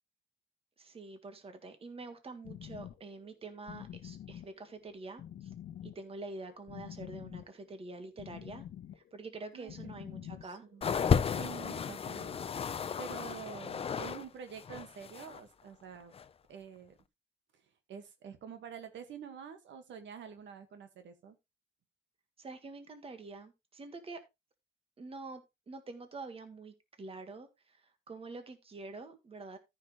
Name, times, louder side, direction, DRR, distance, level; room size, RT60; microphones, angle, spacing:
voice 1, 0.8-5.5 5.8-8.6 8.9-10.6 11.7-11.9 22.4-24.2 25.0-29.6, right 3 dB, 30° right, 1.7 m, -46 dB
sound 1, 2.4-11.5, left 10 dB, 70° left, 0.9 m, -48 dB
voice 2, 9.5-12.4 12.6-16.1 16.5-17.0 17.5-17.6 17.9-21.4, right 7 dB, 85° right, 1.8 m, -48 dB
sound 2, 10.8-14.2 14.5-15.4 16.1-16.2, left 7 dB, 30° left, 0.5 m, -33 dB
14.0 x 5.9 x 3.2 m
wide cardioid pair, 150°, 19 cm